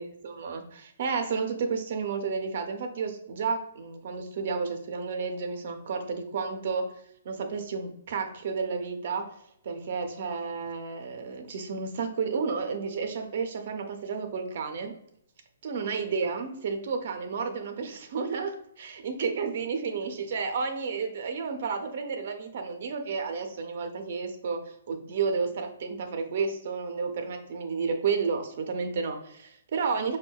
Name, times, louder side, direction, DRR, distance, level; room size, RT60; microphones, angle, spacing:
voice 1, 0.0-6.9 7.2-9.3 9.6-14.9 15.6-30.2, right 5 dB, 50° right, 6 dB, 0.5 m, -31 dB
5.2 x 2.1 x 2.2 m, 0.72 s
hypercardioid pair, 165°, 0 cm